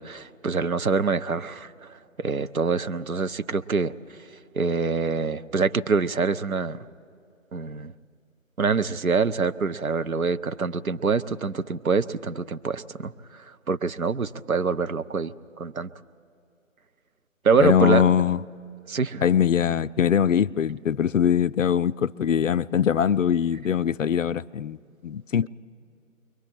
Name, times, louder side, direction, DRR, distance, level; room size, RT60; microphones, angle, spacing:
voice 1, 0.0-3.9 4.5-6.8 7.5-7.9 8.6-13.4 13.7-15.9 17.4-18.1 18.9-19.2, right 5 dB, 85° right, 0.8 m, -25 dB
voice 2, 17.6-18.4 19.2-25.5, left 8 dB, 65° left, 0.5 m, -22 dB
29.0 x 23.0 x 4.5 m
figure-of-eight pair, 150°, 41 cm